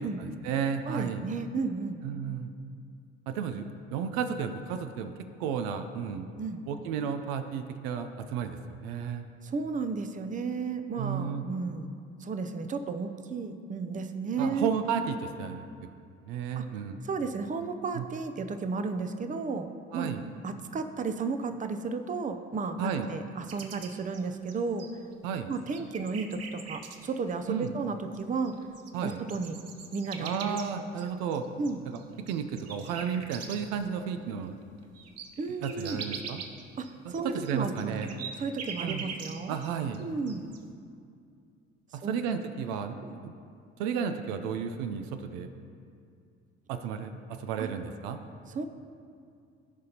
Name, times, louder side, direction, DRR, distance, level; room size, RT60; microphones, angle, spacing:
voice 1, 0.0-1.2 2.0-2.5 3.3-5.1 5.4-6.3 6.7-9.3 10.9-11.5 14.4-15.7 16.2-17.0 17.9-18.0 19.9-20.2 22.8-23.1 25.2-25.5 27.5-27.7 28.9-29.2 30.2-31.5 31.9-32.0 32.3-34.6 35.6-36.4 37.2-38.1 38.8-39.1 39.5-40.0 41.9-43.3 43.8-45.5 46.7-47.1 47.4-48.2, right 7 dB, 75° right, 8 dB, 0.6 m, -33 dB
voice 2, 0.9-2.0 6.4-6.6 9.4-11.9 12.2-14.7 16.6-16.7 17.0-20.1 20.4-24.9 25.5-28.5 29.0-29.6 29.9-30.6 31.6-31.8 35.4-36.0 36.8-37.9 38.4-39.6 40.0-40.4 42.0-42.2 43.0-43.2 47.6-47.7 48.5-48.6, right 4 dB, 25° right, 8 dB, 0.6 m, -33 dB
sound 1, 23.5-25.1 25.5-27.0 28.1-28.2 28.5-33.8 34.2-34.3 34.6-39.7 39.9-40.6, right 6 dB, 50° right, 0.9 m, -42 dB
14.5 x 5.2 x 2.8 m, 2.4 s
hypercardioid pair, 65°, 31 cm